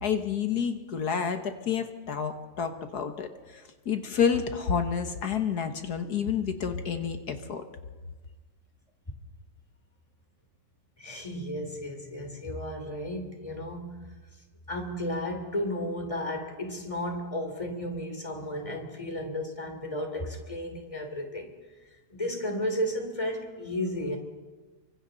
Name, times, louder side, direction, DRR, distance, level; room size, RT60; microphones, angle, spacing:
voice 1, 0.0-7.6, left 7 dB, 65° left, 1.8 m, -29 dB
voice 2, 11.0-14.1 14.7-21.5 22.1-24.2, left 1 dB, 20° left, 3.2 m, -33 dB
29.5 x 25.0 x 4.1 m
omnidirectional pair, 1.9 m